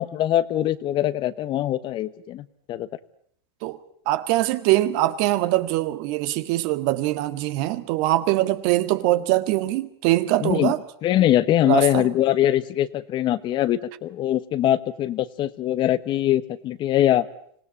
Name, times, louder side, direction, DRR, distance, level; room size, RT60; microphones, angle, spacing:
voice 1, 0.0-2.9 10.4-10.7 11.0-17.3, left 12 dB, 35° left, 1.2 m, -22 dB
voice 2, 4.1-10.8 11.6-12.1, right 16 dB, 55° right, 1.8 m, -22 dB
26.0 x 18.0 x 9.9 m
supercardioid pair, 130°, 13 cm